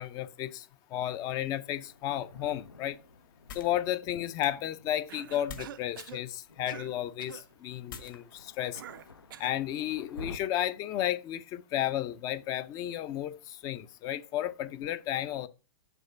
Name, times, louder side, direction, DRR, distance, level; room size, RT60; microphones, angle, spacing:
voice 1, 0.0-3.0 3.5-8.8 9.4-15.5, left 12 dB, 30° left, 0.4 m, -33 dB
Thunder, 1.7-10.4, left 3 dB, 85° left, 0.6 m, -51 dB
sound 1, 2.9-9.7, left 6 dB, 60° left, 1.6 m, -52 dB
Cough, 5.1-6.2 6.6-6.9 7.2-7.5 8.7-9.6, right 10 dB, 60° right, 0.5 m, -46 dB
6.8 x 3.5 x 5.6 m
figure-of-eight pair, 105°, 13 cm